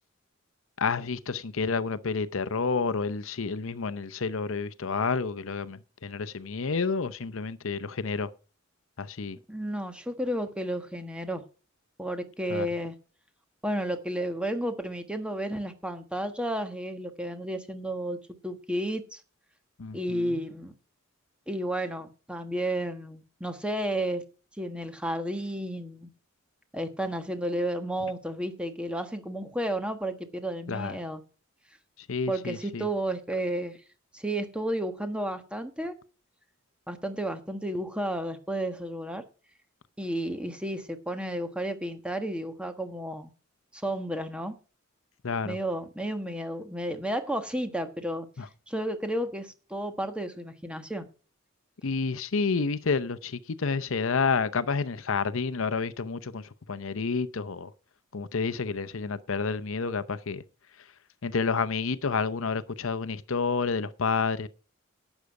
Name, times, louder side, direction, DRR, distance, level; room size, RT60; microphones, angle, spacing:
voice 1, 0.8-8.3 9.0-9.4 12.5-12.7 19.8-20.4 30.7-31.0 32.1-32.9 45.2-45.6 48.4-48.5 51.8-57.7 58.1-60.4 61.2-64.5, left 4 dB, 65° left, 0.7 m, -29 dB
voice 2, 9.5-11.4 12.0-12.9 13.6-18.2 18.4-19.2 19.9-20.7 21.5-24.2 24.6-26.1 26.7-31.2 32.3-33.8 34.1-35.9 36.9-39.2 40.0-43.3 43.7-44.5 45.4-48.3 48.7-51.1, right 1 dB, 5° right, 1.4 m, -32 dB
12.0 x 8.2 x 4.8 m
head